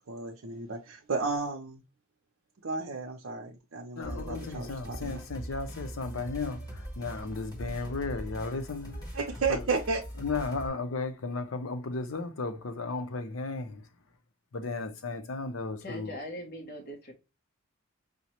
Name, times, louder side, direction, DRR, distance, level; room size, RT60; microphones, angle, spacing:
voice 1, 0.1-1.8 2.6-5.2 9.1-10.0, right 4 dB, 80° right, 0.6 m, -33 dB
voice 2, 4.0-9.0 9.5-9.7 10.2-13.9 14.5-16.2, left 3 dB, 85° left, 0.6 m, -35 dB
sound 1, 4.0-10.7, equal, 20° left, 1.1 m, -41 dB
voice 3, 15.8-17.1, equal, 50° left, 1.0 m, -40 dB
5.2 x 2.1 x 2.8 m
head